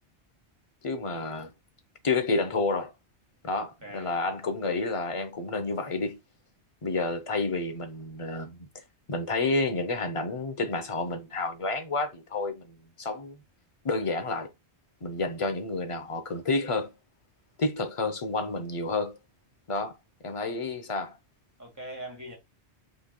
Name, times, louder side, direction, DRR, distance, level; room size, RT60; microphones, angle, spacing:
voice 1, 0.8-1.5 2.0-2.9 3.4-6.2 6.8-8.7 9.1-13.4 13.8-14.5 15.0-16.9 17.6-19.2 19.7-20.0 20.2-21.2, left 3 dB, 35° left, 0.7 m, -30 dB
voice 2, 3.5-4.1 21.6-22.4, right 1 dB, 15° right, 1.7 m, -43 dB
5.8 x 3.3 x 2.2 m
omnidirectional pair, 1.2 m